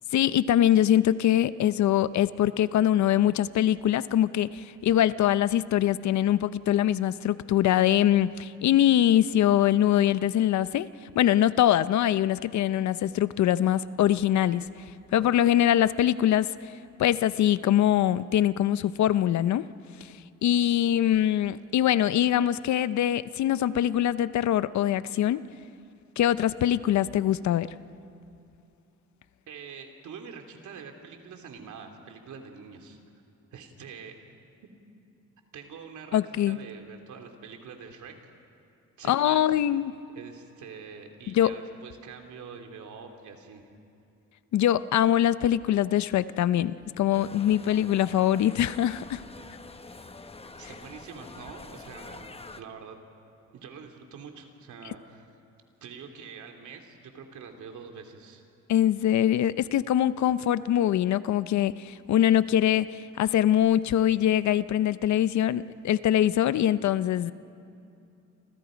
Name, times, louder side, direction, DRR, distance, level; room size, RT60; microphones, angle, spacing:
voice 1, 0.1-10.9 11.1-14.7 15.1-16.5 17.0-19.7 20.4-25.4 26.2-27.7 36.1-36.6 39.1-39.9 41.3-41.5 44.5-49.2 58.7-67.3, left 11 dB, 70° left, 15 dB, 0.7 m, -23 dB
voice 2, 29.5-33.0 33.5-34.1 35.5-36.2 36.4-38.3 39.0-39.4 40.1-43.6 50.6-53.0 53.5-55.3 55.8-58.4, right 6 dB, 75° right, 4 dB, 3.0 m, -45 dB
sound 1, 47.1-52.6, left 3 dB, 20° left, 1.1 m, -46 dB
29.5 x 26.5 x 5.2 m, 2.7 s
cardioid pair, 90°, 30 cm